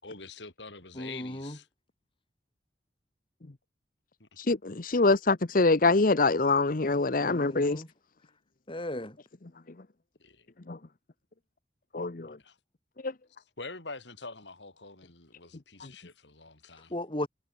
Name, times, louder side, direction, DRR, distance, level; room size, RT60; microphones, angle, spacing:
voice 1, 0.0-1.7 4.2-4.3 10.2-10.5 12.4-12.6 13.6-16.9, left 3 dB, 80° left, 5.9 m, -45 dB
voice 2, 0.9-1.6 7.2-7.9 8.7-9.2 16.9-17.3, left 1 dB, 30° left, 3.2 m, -36 dB
voice 3, 4.4-7.8 10.7-10.8 11.9-12.4 13.0-13.1 15.8-15.9, left 3 dB, 50° left, 0.9 m, -25 dB
head